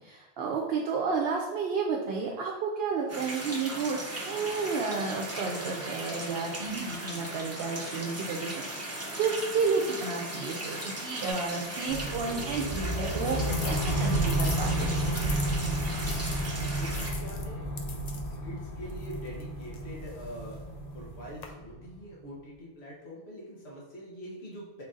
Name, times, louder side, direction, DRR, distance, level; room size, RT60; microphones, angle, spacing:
voice 1, 0.0-15.3, right 4 dB, 70° right, -1 dB, 0.8 m, -32 dB
sound 1, 3.1-17.1, right 1 dB, 20° right, 0.4 m, -38 dB
sound 2, 11.3-15.4 16.0-21.4, left 4 dB, 50° left, 0.5 m, -45 dB
sound 3, 11.9-21.9, right 1 dB, 35° left, 1.5 m, -31 dB
voice 2, 16.8-17.7 18.1-20.6 20.9-24.8, equal, 70° left, -4 dB, 1.3 m, -44 dB
4.5 x 2.6 x 3.7 m, 1.1 s
omnidirectional pair, 1.1 m